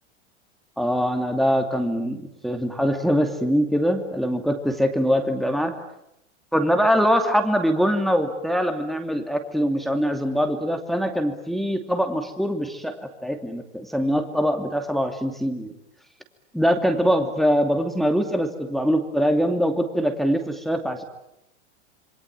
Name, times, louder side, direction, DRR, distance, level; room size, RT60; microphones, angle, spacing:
voice 1, 0.8-5.7 6.5-15.7 16.5-21.0, equal, ahead, 5 dB, 2.7 m, -23 dB
28.0 x 23.5 x 9.0 m, 0.83 s
hypercardioid pair, 105°, 36 cm